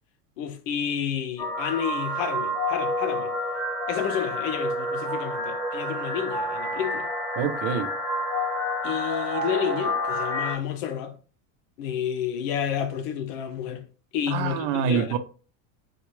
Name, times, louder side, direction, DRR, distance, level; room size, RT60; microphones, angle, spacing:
voice 1, 0.4-3.3 3.9-7.1 8.8-11.1 11.8-13.9 14.1-15.2, left 9 dB, 85° left, 0.7 m, -30 dB
sound 1, 1.4-10.5, left 1 dB, 10° left, 1.4 m, -29 dB
voice 2, 7.4-7.9 14.3-15.2, right 8 dB, 75° right, 0.6 m, -26 dB
3.9 x 2.3 x 3.1 m
cardioid pair, 165°, 38 cm